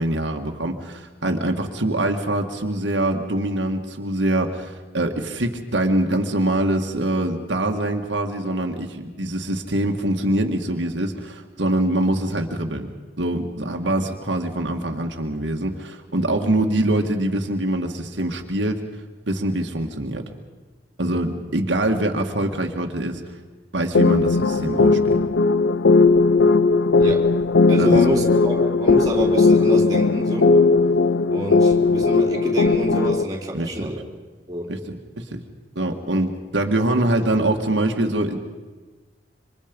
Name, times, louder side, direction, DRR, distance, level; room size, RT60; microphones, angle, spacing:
voice 1, 0.0-12.9 13.2-18.8 19.3-20.2 21.0-23.2 23.7-25.2 27.8-28.0 33.5-33.9 34.7-35.4 35.8-38.4, right 1 dB, 85° right, 3 dB, 1.9 m, -24 dB
sound 1, 23.9-33.2, left 3 dB, 90° left, 0.7 m, -17 dB
voice 2, 27.0-27.4 27.7-30.6 31.3-34.0 34.5-34.7 36.1-36.2, equal, 20° right, -2 dB, 3.3 m, -27 dB
27.0 x 25.0 x 5.3 m, 1.3 s
head